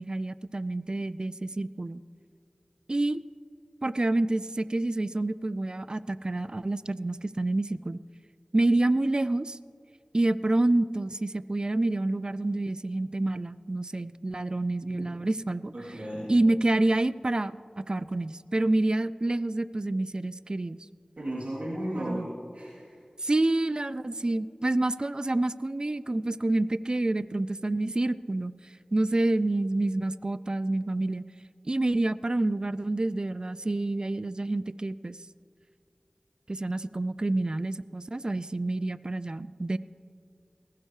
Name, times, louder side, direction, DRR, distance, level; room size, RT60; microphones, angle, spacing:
voice 1, 0.0-2.0 2.9-3.2 3.8-8.0 8.5-9.6 10.1-15.7 16.3-20.8 22.0-22.3 23.2-28.5 28.9-31.2 31.6-35.2 36.5-39.8, right 2 dB, 40° right, 16 dB, 0.4 m, -28 dB
voice 2, 15.7-16.3 21.2-22.3 22.5-23.0, right 1 dB, 75° right, -7 dB, 2.9 m, -34 dB
19.0 x 15.5 x 3.2 m, 2.4 s
wide cardioid pair, 50°, 2 cm